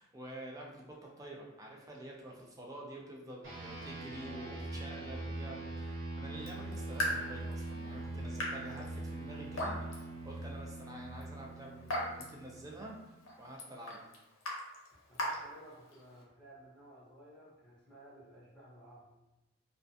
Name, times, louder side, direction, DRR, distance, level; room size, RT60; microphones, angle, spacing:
voice 1, 0.0-13.0 13.4-14.1, right 1 dB, 15° right, -2 dB, 0.3 m, -48 dB
sound 1, 3.4-13.2, right 2 dB, 65° right, 0.7 m, -43 dB
voice 2, 4.2-4.8 14.9-19.2, right 1 dB, 5° left, -9 dB, 0.8 m, -56 dB
Raindrop / Drip, 6.3-16.2, equal, 70° left, 0.6 m, -42 dB
2.3 x 2.2 x 2.5 m, 0.95 s
head